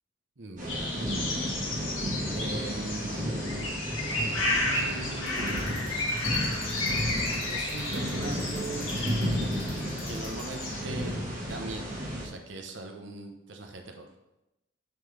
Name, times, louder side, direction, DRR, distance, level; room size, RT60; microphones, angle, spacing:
voice 1, 0.4-0.9 2.3-3.3 4.2-6.6 7.5-8.9 10.0-14.1, right 2 dB, 65° right, 3 dB, 0.8 m, -41 dB
sound 1, 0.6-12.3, equal, 45° right, 1.4 m, -33 dB
sound 2, 0.7-10.8, left 2 dB, 90° left, 1.4 m, -33 dB
sound 3, 5.3-10.7, right 1 dB, ahead, 1.7 m, -50 dB
5.9 x 5.3 x 3.3 m, 0.92 s
head